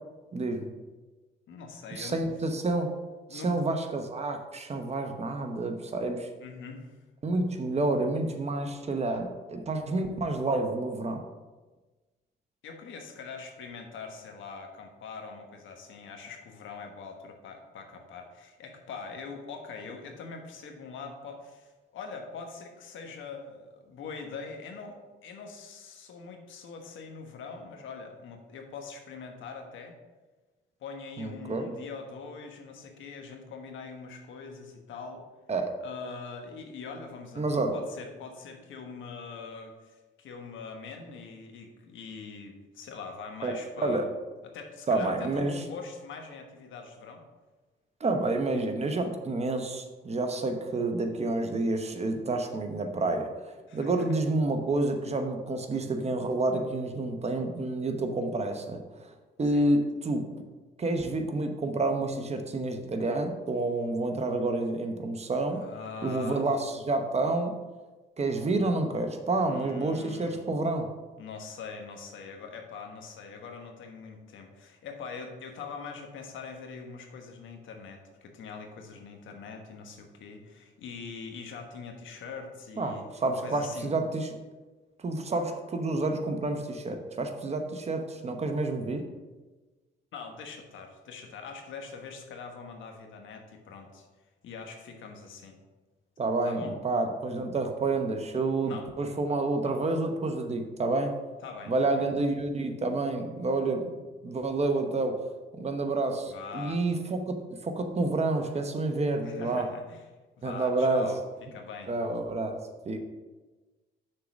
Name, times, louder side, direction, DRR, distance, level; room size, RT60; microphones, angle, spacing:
voice 1, 0.3-0.7 1.9-2.9 3.3-6.3 7.2-11.2 31.2-31.7 35.5-35.7 37.4-37.8 43.4-44.0 44.9-45.6 48.0-59.1 59.4-60.3 60.8-65.6 66.0-67.5 68.2-70.9 82.8-84.3 85.0-89.0 96.2-101.2 101.7-103.9 104.2-105.2 105.5-107.4 107.6-109.7 110.4-111.1 111.9-112.6 112.8-113.0, right 2 dB, 35° right, 5 dB, 0.9 m, -29 dB
voice 2, 1.5-2.2 3.3-3.5 6.4-6.9 12.6-30.0 30.8-35.3 35.8-44.1 44.4-47.2 53.7-54.1 59.5-59.7 65.5-66.5 69.4-70.4 71.2-83.0 83.4-83.9 88.9-89.1 90.1-94.1 94.4-95.6 96.4-96.7 98.6-98.9 99.6-99.7 101.4-102.0 106.3-106.8 109.2-110.0 110.4-111.2 111.5-111.9, left 5 dB, 75° left, 4 dB, 1.2 m, -43 dB
6.5 x 3.9 x 6.2 m, 1.2 s
cardioid pair, 90°, 20 cm